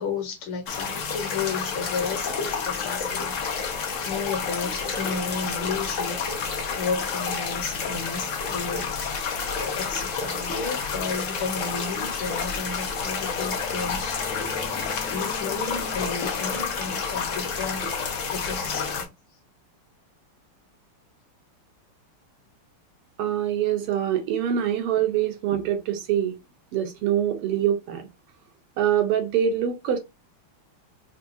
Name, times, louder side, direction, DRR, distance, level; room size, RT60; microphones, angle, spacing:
voice 1, 0.0-3.4 4.0-6.2 6.7-8.9 9.5-14.2 15.0-19.1, left 4 dB, 70° left, 1.7 m, -33 dB
sound 1, 0.7-19.0, left 5 dB, 90° left, 0.6 m, -29 dB
sound 2, 13.0-18.5, left 3 dB, 50° left, 0.8 m, -44 dB
voice 2, 23.2-26.4 26.7-28.1 28.8-30.0, right 10 dB, 85° right, 1.8 m, -24 dB
4.8 x 2.3 x 2.6 m
omnidirectional pair, 2.4 m